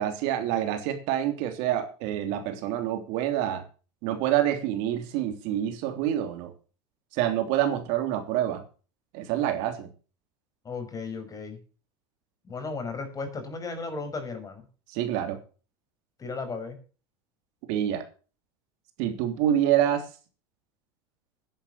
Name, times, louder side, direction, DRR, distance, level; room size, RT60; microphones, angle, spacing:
voice 1, 0.0-3.6 4.0-6.5 7.1-8.6 9.1-9.9 14.9-15.4 17.7-18.0 19.0-20.0, right 11 dB, 65° right, 7 dB, 3.2 m, -27 dB
voice 2, 10.6-11.6 12.4-14.6 16.2-16.8, left 4 dB, 25° left, 6 dB, 5.6 m, -35 dB
11.0 x 10.5 x 7.0 m, 0.37 s
supercardioid pair, 105°, 14 cm